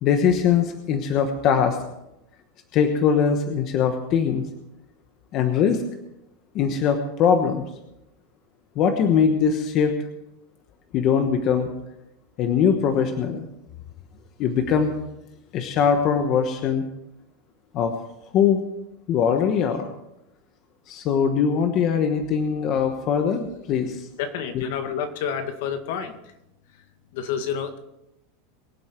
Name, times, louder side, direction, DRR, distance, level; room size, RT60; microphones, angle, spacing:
voice 1, 0.0-1.8 2.7-4.5 5.3-5.8 6.5-7.6 8.8-9.9 10.9-11.7 12.4-13.5 14.4-14.9 15.5-16.8 17.7-17.9 18.3-18.6 19.1-19.9 20.9-24.1 24.5-24.7, left 7 dB, 35° left, 6 dB, 1.2 m, -21 dB
voice 2, 24.2-26.2 27.1-27.8, left 7 dB, 60° left, 7 dB, 1.8 m, -29 dB
23.0 x 7.9 x 4.6 m, 0.88 s
supercardioid pair, 165°, 0 cm